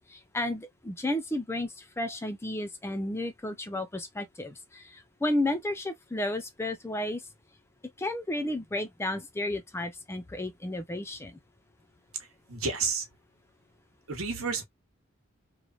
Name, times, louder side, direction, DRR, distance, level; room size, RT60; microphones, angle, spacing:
voice 1, 0.1-1.7 2.0-4.8 5.2-7.2 8.0-11.3, left 1 dB, 10° left, 0.4 m, -32 dB
voice 2, 12.5-13.0 14.1-14.6, right 5 dB, 85° right, 1.0 m, -30 dB
3.1 x 2.1 x 2.3 m
head